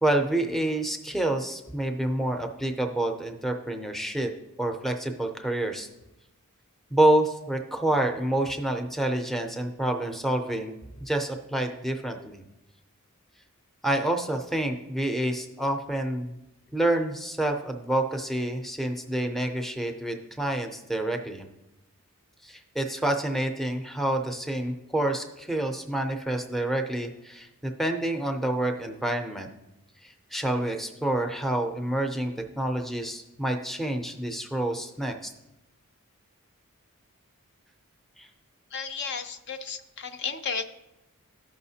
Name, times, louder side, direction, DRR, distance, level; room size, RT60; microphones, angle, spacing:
voice 1, 0.0-4.3 4.6-5.9 6.9-10.7 11.0-12.4 13.8-16.4 16.7-21.5 22.4-29.5 30.0-35.3 38.2-38.3, right 1 dB, ahead, 3 dB, 0.5 m, -28 dB
voice 2, 38.7-40.6, left 5 dB, 50° left, 7 dB, 0.5 m, -33 dB
13.5 x 5.6 x 2.7 m, 0.92 s
head